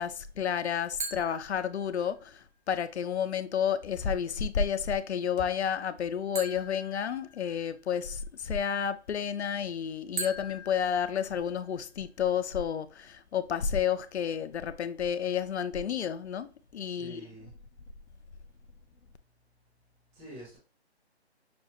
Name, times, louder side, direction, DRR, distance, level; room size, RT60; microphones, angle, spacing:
voice 1, 0.0-17.2, left 8 dB, 80° left, 0.6 m, -31 dB
sound 1, 1.0-2.3 6.3-7.9 10.2-11.9, right 2 dB, 45° right, 1.3 m, -41 dB
voice 2, 16.8-17.5 20.1-20.6, right 1 dB, 5° right, 0.9 m, -47 dB
6.1 x 2.4 x 3.0 m
hypercardioid pair, 165°, 33 cm